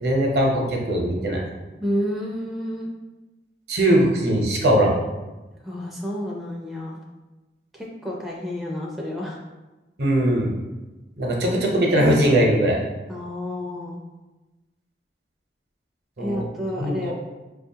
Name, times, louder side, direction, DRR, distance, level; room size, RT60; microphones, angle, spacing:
voice 1, 0.0-1.4 3.7-4.9 10.0-10.5 11.2-12.8 16.2-16.4 16.8-17.1, right 1 dB, 70° right, -1 dB, 0.8 m, -20 dB
voice 2, 1.8-2.9 5.6-7.0 7.7-9.4 13.1-14.0 16.2-17.1, left 1 dB, ahead, -3 dB, 0.4 m, -30 dB
4.9 x 2.3 x 2.7 m, 1.1 s
head